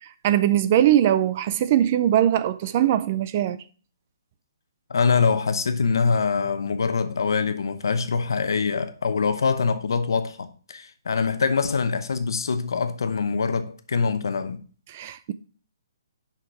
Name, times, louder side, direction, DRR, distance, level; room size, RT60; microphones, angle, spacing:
voice 1, 0.0-3.6 14.9-15.3, right 11 dB, 25° right, 0.3 m, -21 dB
voice 2, 4.9-14.6, left 5 dB, 75° left, 0.9 m, -24 dB
5.8 x 5.8 x 6.0 m
hypercardioid pair, 175°, 2 cm